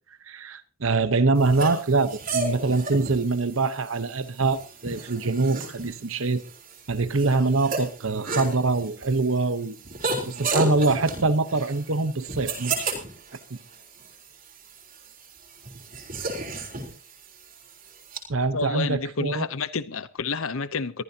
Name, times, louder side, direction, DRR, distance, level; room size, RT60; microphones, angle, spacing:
voice 1, 0.3-6.4 6.9-9.8 10.3-13.0 18.3-19.5, right 3 dB, 65° right, 1.0 m, -24 dB
sound 1, 1.4-18.2, right 3 dB, 40° right, 3.8 m, -34 dB
voice 2, 18.5-21.0, left 4 dB, 70° left, 0.8 m, -29 dB
22.5 x 14.5 x 2.9 m
head